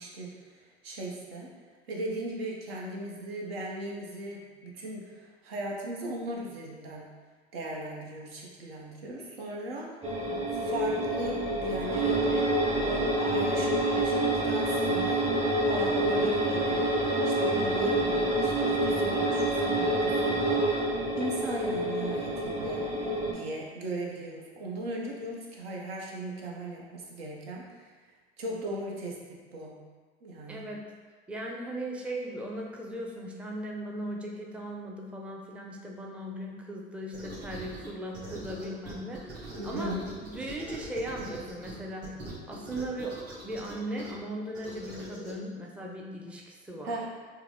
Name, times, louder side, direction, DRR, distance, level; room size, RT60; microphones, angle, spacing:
voice 1, 0.0-1.5 1.9-7.1 7.5-9.9 10.5-12.5 12.8-15.3 15.6-16.9 17.2-20.6 21.2-27.9 28.4-29.8 30.2-30.7 39.6-40.0 46.8-47.1, right 1 dB, 80° right, -2 dB, 0.8 m, -37 dB
sound 1, 10.0-23.3, right 1 dB, 25° right, 0.8 m, -27 dB
voice 2, 30.5-30.9 31.3-39.9 40.3-42.2 42.5-47.0, right 1 dB, 5° right, -1 dB, 0.5 m, -38 dB
sound 2, 37.1-37.9 38.1-41.7 42.0-44.1 44.5-45.3, right 1 dB, 50° right, 1.5 m, -42 dB
4.6 x 2.0 x 3.6 m, 1.4 s
hypercardioid pair, 70°, 30 cm